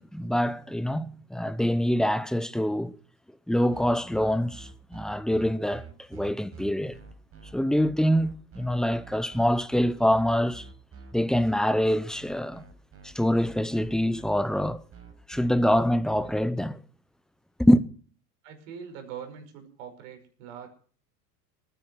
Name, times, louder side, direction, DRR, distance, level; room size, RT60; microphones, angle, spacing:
voice 1, 0.0-3.0 3.5-7.0 7.5-10.7 11.1-12.6 13.0-14.8 15.3-16.8 17.6-17.8, equal, ahead, 0.7 m, -25 dB
sound 1, 3.7-16.3, right 5 dB, 30° right, 6.0 m, -47 dB
voice 2, 18.4-20.7, right 8 dB, 55° right, 5.6 m, -42 dB
19.5 x 10.5 x 6.2 m
figure-of-eight pair, 80°, 47 cm